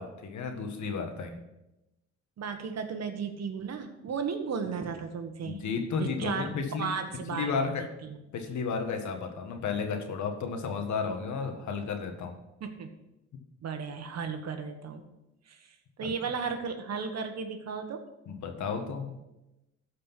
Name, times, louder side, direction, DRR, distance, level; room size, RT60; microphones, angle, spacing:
voice 1, 0.0-1.4 5.4-6.9 7.3-7.8 8.3-12.3 16.0-16.1 18.3-19.2, left 5 dB, 70° left, 5 dB, 1.7 m, -33 dB
voice 2, 2.4-5.6 6.0-6.5 6.8-7.7 8.0-8.2 12.6-12.9 13.6-15.0 15.5-18.0, right 5 dB, 60° right, 6 dB, 1.5 m, -35 dB
14.0 x 5.1 x 5.8 m, 0.94 s
cardioid pair, 90°, 30 cm